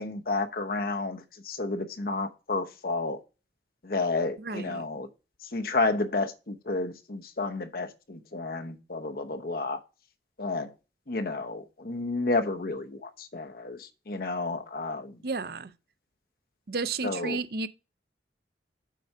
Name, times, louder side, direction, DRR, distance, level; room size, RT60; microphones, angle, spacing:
voice 1, 0.0-3.2 3.8-5.1 5.5-9.8 10.4-10.7 11.1-15.2 17.0-17.4, left 3 dB, 55° left, 0.9 m, -31 dB
voice 2, 4.4-4.8 15.2-15.7 16.7-17.7, right 4 dB, 55° right, 0.5 m, -32 dB
7.5 x 4.8 x 5.4 m
head